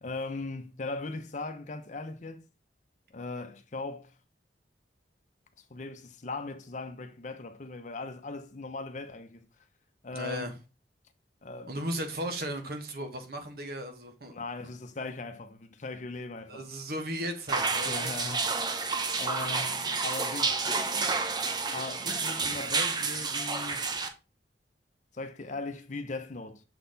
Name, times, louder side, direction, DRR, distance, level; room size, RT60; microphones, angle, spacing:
voice 1, 0.0-2.4 3.1-4.1 5.6-9.5 10.0-10.5 11.4-11.8 14.3-16.6 17.9-20.6 21.7-23.9 25.1-26.6, left 3 dB, 45° left, 0.7 m, -39 dB
voice 2, 10.1-10.5 11.7-14.4 16.5-18.1, equal, 60° right, 1.3 m, -36 dB
sound 1, 17.5-24.1, right 4 dB, 25° right, 0.7 m, -30 dB
6.9 x 4.0 x 3.9 m
head